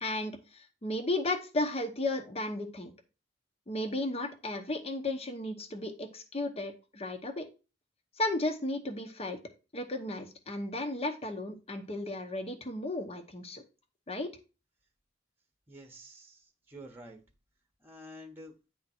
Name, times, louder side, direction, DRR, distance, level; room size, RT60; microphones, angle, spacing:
voice 1, 0.0-2.9 3.7-7.5 8.2-9.4 9.7-13.6 14.1-14.3, left 2 dB, 35° left, 5 dB, 0.9 m, -34 dB
voice 2, 15.7-17.2 17.8-18.5, equal, 10° right, 3 dB, 1.1 m, -49 dB
9.7 x 3.6 x 4.3 m, 0.31 s
head